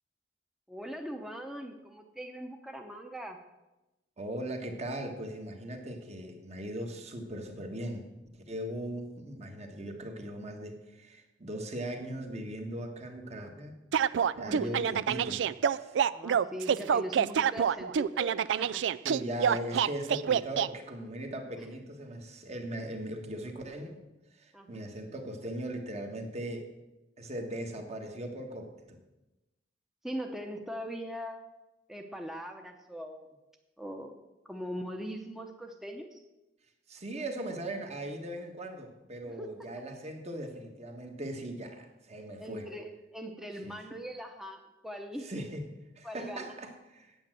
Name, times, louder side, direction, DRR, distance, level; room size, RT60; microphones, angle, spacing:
voice 1, 0.7-3.4 14.4-14.9 16.1-18.8 24.5-24.8 30.0-31.4 31.9-33.3 33.8-36.2 39.3-39.7 42.4-45.3 46.0-46.5, equal, ahead, 4 dB, 0.8 m, -41 dB
voice 2, 4.2-13.8 14.4-15.4 15.7-16.0 19.0-24.0 24.3-26.7 27.2-29.0 36.9-42.7 43.6-43.8 45.2-47.2, right 1 dB, 40° right, 4 dB, 1.5 m, -39 dB
sound 1, 13.9-20.7, right 8 dB, 85° right, 0.3 m, -27 dB
8.8 x 8.7 x 7.7 m, 1.0 s
head